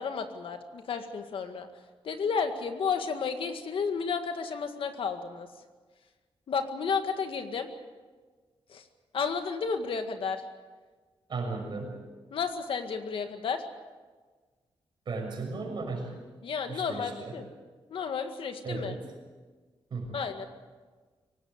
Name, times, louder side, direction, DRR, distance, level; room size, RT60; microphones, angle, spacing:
voice 1, 0.0-1.7 2.0-5.5 6.5-7.7 8.7-8.8 9.1-10.5 12.3-13.6 16.4-17.5 17.9-19.0 20.1-20.4, left 5 dB, 70° left, 7 dB, 1.9 m, -32 dB
voice 2, 11.3-12.0 15.1-16.1 16.7-17.3 18.6-19.0 19.9-20.2, right 3 dB, 55° right, 1 dB, 6.6 m, -35 dB
23.5 x 18.5 x 8.2 m, 1.4 s
wide cardioid pair, 155°, 9 cm